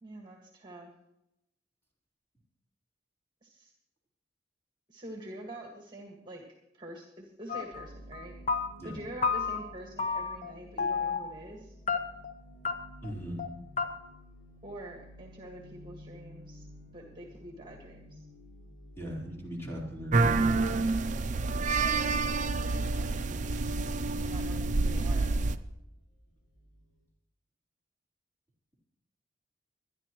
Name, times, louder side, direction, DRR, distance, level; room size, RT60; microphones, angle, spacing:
voice 1, 0.0-0.9 3.4-3.7 4.9-6.4 6.7-8.4 8.8-11.7 14.6-16.6 16.9-18.2 21.7-23.4 24.2-25.3, right 1 dB, 25° right, 0 dB, 1.8 m, -45 dB
sound 1, 7.5-7.9 8.1-8.9 9.2-9.7 10.0-10.5 10.8-11.3 11.9-12.3 12.7-12.8 13.0-13.1 13.4-13.5 13.8-13.9, left 5 dB, 40° left, 1.0 m, -31 dB
sound 2, 7.7-27.1, equal, 70° left, 4.6 m, -53 dB
voice 2, 13.0-13.5 19.0-20.7, equal, 15° left, -4 dB, 4.0 m, -39 dB
sound 3, 20.1-25.6, right 3 dB, 45° right, 0.6 m, -28 dB
22.5 x 10.5 x 3.1 m, 0.84 s
head